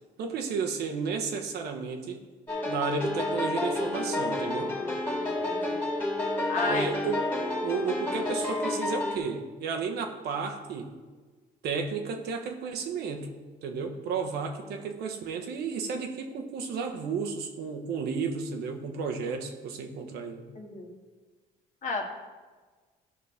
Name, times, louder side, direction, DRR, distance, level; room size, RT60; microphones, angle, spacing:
voice 1, 0.2-2.2 2.6-4.7 6.5-7.2 7.6-10.9 11.6-13.3 13.6-20.5, right 5 dB, 75° right, 3 dB, 1.1 m, -33 dB
sound 1, 2.5-9.2, left 2 dB, 10° left, 2.0 m, -30 dB
voice 2, 4.6-4.9 5.2-5.8 6.5-6.9 20.5-20.9 21.8-22.0, left 3 dB, 50° left, 1 dB, 1.6 m, -33 dB
12.5 x 5.3 x 3.5 m, 1.4 s
cardioid pair, 110°, 17 cm